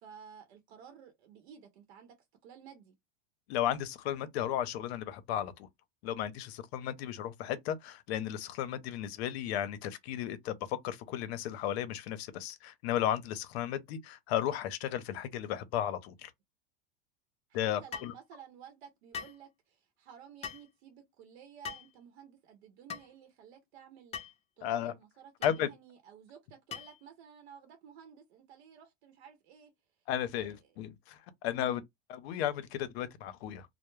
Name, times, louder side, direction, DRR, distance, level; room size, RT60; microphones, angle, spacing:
voice 1, 0.0-2.9 17.5-29.7 30.3-30.8 31.5-31.8, right 8 dB, 80° right, 0.8 m, -54 dB
voice 2, 3.5-5.7 6.0-16.3 17.5-18.1 24.6-24.9 25.4-25.7 30.1-31.8 32.1-33.7, left 10 dB, 75° left, 0.6 m, -34 dB
sound 1, 17.9-18.2 19.1-19.4 20.4-20.7 21.6-21.9 22.9-23.1 24.1-24.4 25.4-25.6 26.7-27.0, left 7 dB, 20° left, 0.4 m, -41 dB
2.2 x 2.0 x 3.0 m
supercardioid pair, 115°, 32 cm